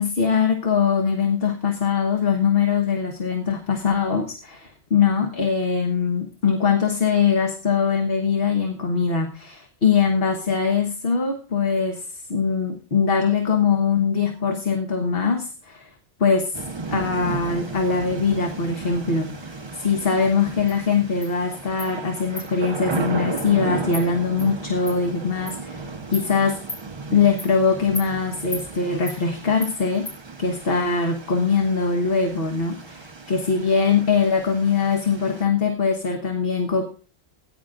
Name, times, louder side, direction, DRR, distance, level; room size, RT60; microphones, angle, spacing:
voice 1, 0.0-15.9 16.2-16.6 16.9-19.3 19.7-26.6 27.1-30.1 30.4-36.8, left 5 dB, 65° left, 3 dB, 1.4 m, -22 dB
sound 1, 16.5-35.4, right 3 dB, 30° right, 0.9 m, -35 dB
Insect, 20.7-20.8 21.2-21.3 21.8-21.9 22.4-22.5 22.9-23.0 23.4-23.5 23.9-24.0 24.4-24.5 24.9-25.0 25.5-25.6 26.1-26.3 26.7-26.8 27.4-27.5 27.9-28.1 28.5-28.6 29.1-29.2 29.6-29.7 30.0-30.2, left 1 dB, 50° left, 4.4 m, -34 dB
18.5 x 10.0 x 2.5 m, 0.36 s
omnidirectional pair, 1.0 m